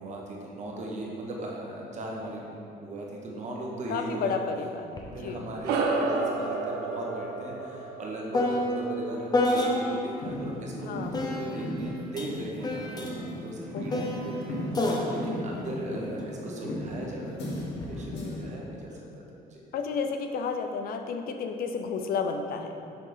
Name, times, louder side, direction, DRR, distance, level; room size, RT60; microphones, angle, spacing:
voice 1, 0.0-4.4 5.1-17.5 17.9-19.2 19.5-19.6, right 1 dB, 45° right, -2 dB, 1.2 m, -38 dB
voice 2, 3.9-5.4 10.8-11.6 13.7-14.1 18.1-18.6 19.7-22.8, left 5 dB, 60° left, 6 dB, 0.5 m, -32 dB
sound 1, 5.0-5.1 5.4-10.2 11.1-16.7 17.5-17.9, left 1 dB, 25° left, 0.7 m, -31 dB
sound 2, 5.6-10.4, right 3 dB, 75° right, 0.7 m, -32 dB
sound 3, 10.2-18.5, left 1 dB, 90° left, 1.2 m, -37 dB
5.8 x 3.7 x 5.0 m, 2.7 s
cardioid pair, 110°, 17 cm